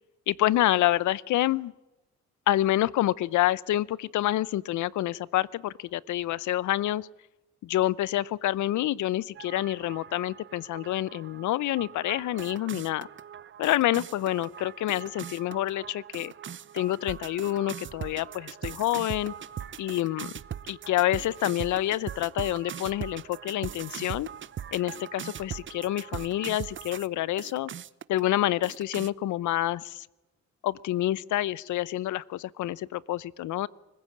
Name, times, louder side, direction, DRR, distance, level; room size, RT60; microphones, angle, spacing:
voice 1, 0.3-1.7 2.5-7.1 7.6-13.1 13.6-16.3 16.7-19.3 19.8-20.3 20.7-24.3 24.7-27.7 28.1-30.1 30.6-33.7, left 14 dB, 75° left, 22 dB, 0.7 m, -27 dB
sound 1, 9.4-27.1 27.4-28.2 28.6-29.1, right 9 dB, 40° right, 0.7 m, -41 dB
24.5 x 15.5 x 8.6 m, 1.0 s
cardioid pair, 90°, 30 cm